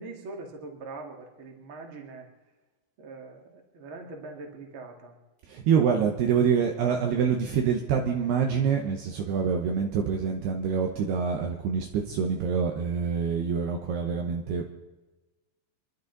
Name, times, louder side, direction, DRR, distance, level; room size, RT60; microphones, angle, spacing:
voice 1, 0.0-2.3 3.0-5.1, right 3 dB, 40° right, 1 dB, 2.1 m, -42 dB
voice 2, 5.5-14.7, right 6 dB, 70° right, 2 dB, 2.7 m, -26 dB
28.5 x 11.5 x 4.1 m, 1.1 s
omnidirectional pair, 5.5 m